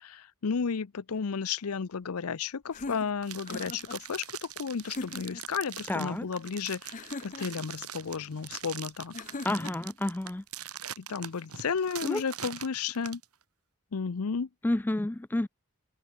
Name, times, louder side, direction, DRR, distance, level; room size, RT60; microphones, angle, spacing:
voice 1, 0.0-9.1 11.0-13.2 13.9-14.5, left 5 dB, 70° left, 0.6 m, -33 dB
sound 1, 2.7-4.0 4.8-5.5 6.9-7.7 9.1-9.9, left 3 dB, 35° left, 0.9 m, -40 dB
sound 2, 3.2-13.2, right 10 dB, 80° right, 5.8 m, -42 dB
voice 2, 5.9-6.3 9.4-10.4 12.0-12.2 14.6-15.5, left 1 dB, 10° left, 0.3 m, -30 dB
open air
head